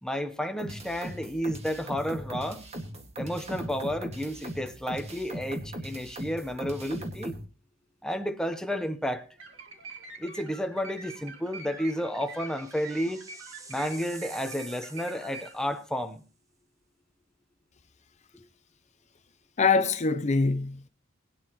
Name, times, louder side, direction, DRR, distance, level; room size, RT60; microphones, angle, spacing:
voice 1, 0.0-2.6 3.2-7.3 8.0-9.3 10.2-13.2 13.7-16.2 18.3-18.5, equal, 5° left, 1.0 m, -31 dB
sound 1, 0.6-7.4, right 1 dB, 35° right, 2.0 m, -39 dB
sound 2, 9.3-9.5 9.9-10.0 11.4-16.1, right 3 dB, 15° right, 1.6 m, -49 dB
sound 3, 9.4-15.5, right 4 dB, 75° right, 2.3 m, -45 dB
voice 2, 19.6-20.9, left 4 dB, 35° left, 0.6 m, -24 dB
21.0 x 9.7 x 3.1 m
head